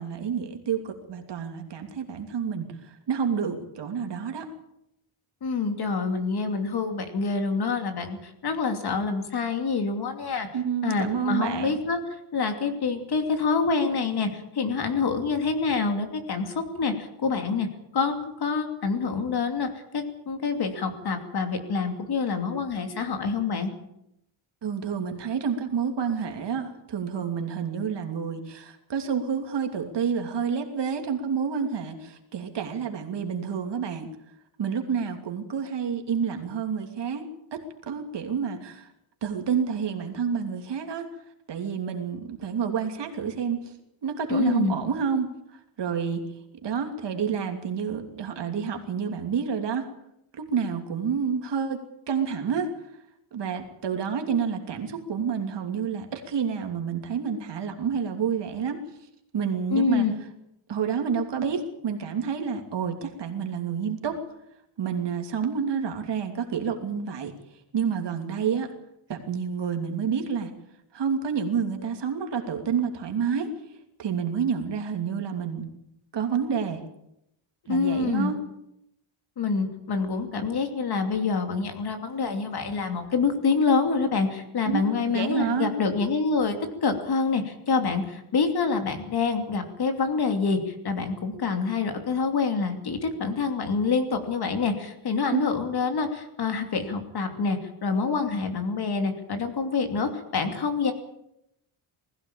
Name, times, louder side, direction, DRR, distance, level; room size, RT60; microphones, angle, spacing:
voice 1, 0.0-4.5 10.5-11.8 24.6-34.1 34.6-38.9 39.2-41.1 41.5-43.7 44.0-45.3 45.8-46.2 46.6-49.9 50.4-52.7 53.3-58.8 59.3-60.1 60.7-64.2 64.8-67.3 67.7-68.7 69.1-70.5 70.9-73.5 74.0-75.7 76.1-76.8 77.7-78.4 84.6-85.7 95.3-95.5, right 6 dB, 55° right, 5 dB, 3.0 m, -29 dB
voice 2, 5.4-10.5 10.8-12.0 12.3-17.7 17.9-23.7 44.3-44.8 59.7-60.1 77.7-78.3 79.4-86.6 86.8-100.9, left 4 dB, 50° left, 6 dB, 2.8 m, -26 dB
20.0 x 16.0 x 8.8 m, 0.81 s
wide cardioid pair, 180°, 49 cm